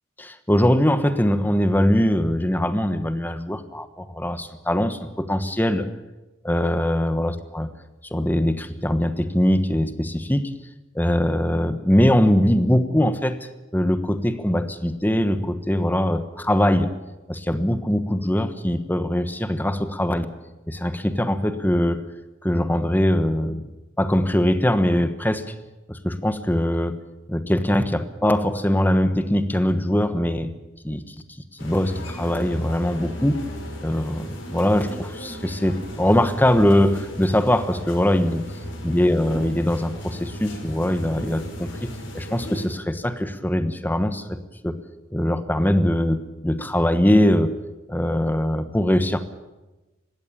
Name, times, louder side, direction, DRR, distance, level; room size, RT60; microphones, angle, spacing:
voice 1, 0.2-5.9 6.4-7.7 8.1-10.5 10.9-13.4 13.7-16.9 17.3-20.3 20.7-22.0 22.4-23.6 24.0-25.5 25.9-27.0 27.3-30.5 30.8-31.1 31.6-33.4 33.8-38.4 38.8-41.7 42.1-44.4 44.6-44.8 45.1-47.5 47.9-49.2, left 1 dB, 10° left, 10 dB, 1.2 m, -22 dB
sound 1, 31.6-42.7, equal, 65° left, 5.7 m, -35 dB
20.0 x 16.5 x 9.1 m, 1.1 s
head